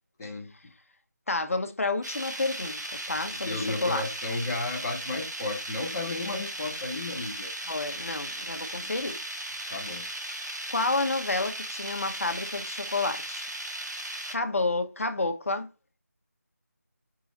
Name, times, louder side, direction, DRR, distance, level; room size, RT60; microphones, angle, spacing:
voice 1, 0.2-0.5 3.1-7.5 8.8-9.0 9.7-10.0, left 2 dB, 5° left, 0.6 m, -33 dB
voice 2, 1.3-2.8 3.1-4.1 7.7-9.2 10.7-13.5 14.3-15.7, left 3 dB, 55° left, 0.9 m, -30 dB
sound 1, 2.0-14.4, right 1 dB, 85° right, 1.6 m, -37 dB
4.8 x 3.9 x 5.1 m
figure-of-eight pair, 175°, 9 cm